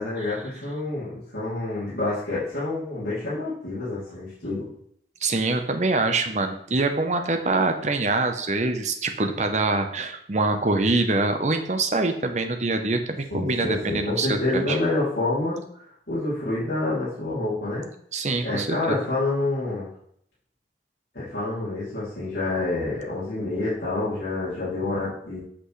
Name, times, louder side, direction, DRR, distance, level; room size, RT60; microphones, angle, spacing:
voice 1, 0.0-4.7 13.3-17.9 18.4-19.9 21.1-25.4, left 2 dB, 70° left, -12 dB, 2.8 m, -28 dB
voice 2, 5.2-14.8 18.1-19.0, right 3 dB, 40° right, 6 dB, 0.7 m, -24 dB
8.1 x 6.1 x 3.2 m, 0.67 s
head